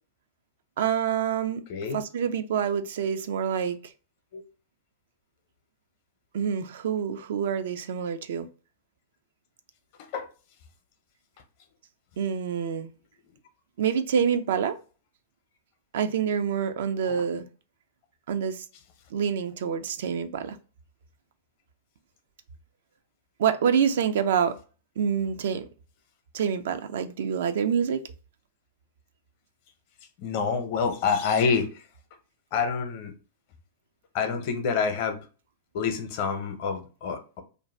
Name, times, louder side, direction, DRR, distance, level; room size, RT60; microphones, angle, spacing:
voice 1, 0.8-3.9 6.3-8.5 12.2-12.9 13.8-14.8 15.9-17.5 18.3-18.7 19.1-20.6 23.4-24.6 25.0-25.7 26.3-28.0, right 7 dB, 65° right, 0.4 m, -27 dB
voice 2, 1.7-2.0 4.3-4.4 10.1-10.3 17.1-17.2 30.2-31.7 32.5-33.1 34.1-35.2 35.7-37.4, left 5 dB, 55° left, 0.7 m, -27 dB
2.5 x 2.2 x 3.2 m
hypercardioid pair, 100°, 0 cm